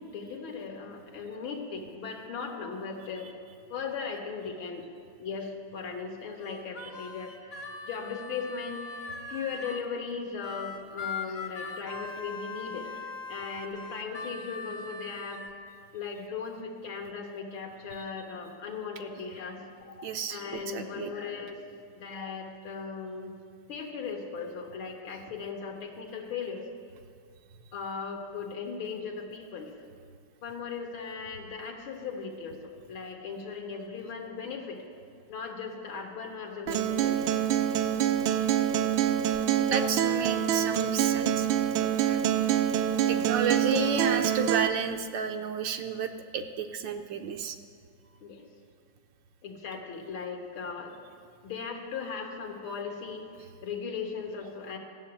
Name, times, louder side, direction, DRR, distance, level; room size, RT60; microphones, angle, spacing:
voice 1, 0.0-3.3 3.7-4.9 5.2-12.9 13.3-15.5 15.9-21.6 21.9-23.3 23.7-26.7 27.7-29.7 30.4-34.8 35.3-37.5 43.0-43.3 48.2-48.4 49.4-51.0 51.4-54.8, left 5 dB, 80° left, 2 dB, 2.3 m, -38 dB
Harmonica, 6.4-9.9 10.4-15.5, left 4 dB, 45° left, 0.8 m, -40 dB
voice 2, 20.0-21.1 39.7-41.5 41.8-42.2 43.1-47.6, right 6 dB, 70° right, 6 dB, 1.3 m, -31 dB
Acoustic guitar, 36.7-44.7, right 10 dB, 90° right, 1.4 m, -26 dB
14.5 x 7.0 x 8.8 m, 2.1 s
omnidirectional pair, 2.2 m